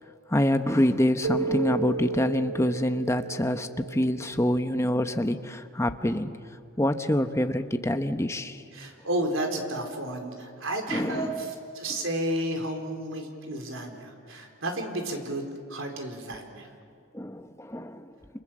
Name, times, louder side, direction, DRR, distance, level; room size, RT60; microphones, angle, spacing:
voice 1, 0.3-6.3 6.8-8.6 10.9-11.4 17.1-18.1, left 1 dB, 15° left, 8 dB, 0.9 m, -26 dB
Keyboard (musical), 1.2-4.4, right 4 dB, 85° right, 1.1 m, -33 dB
voice 2, 8.7-16.7, right 1 dB, 70° right, 3 dB, 4.1 m, -32 dB
28.5 x 27.5 x 7.5 m, 2.3 s
head